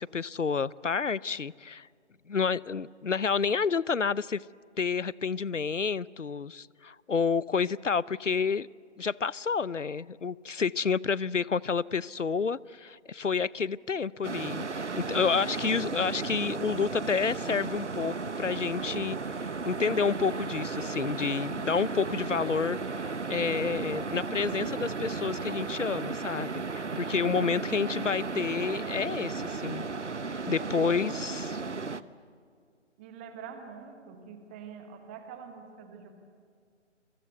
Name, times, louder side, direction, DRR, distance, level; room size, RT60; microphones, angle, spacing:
voice 1, 0.0-1.9 2.3-4.4 4.8-8.7 9.0-19.2 19.6-22.8 23.0-29.8 30.5-31.6, left 5 dB, 80° left, 22 dB, 0.8 m, -29 dB
sound 1, 14.2-32.0, right 4 dB, 70° right, 1.1 m, -35 dB
voice 2, 27.3-27.8 30.7-31.0 33.0-36.1, right 6 dB, 10° right, 6 dB, 1.1 m, -45 dB
29.0 x 23.5 x 8.1 m, 2.1 s
figure-of-eight pair, 150°, 36 cm